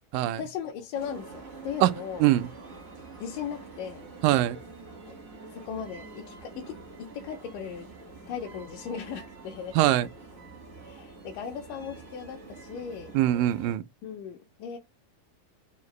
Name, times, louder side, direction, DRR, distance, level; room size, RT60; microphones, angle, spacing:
voice 1, 0.2-2.3 3.2-4.1 5.1-5.2 5.5-7.9 8.3-9.8 10.8-13.1 14.0-14.8, left 7 dB, 80° left, 2.2 m, -37 dB
sound 1, 0.9-13.8, right 3 dB, 60° right, 0.9 m, -46 dB
voice 2, 4.2-4.6 9.8-10.1 13.1-13.8, right 14 dB, 85° right, 2.1 m, -22 dB
5.7 x 2.5 x 3.0 m
omnidirectional pair, 3.9 m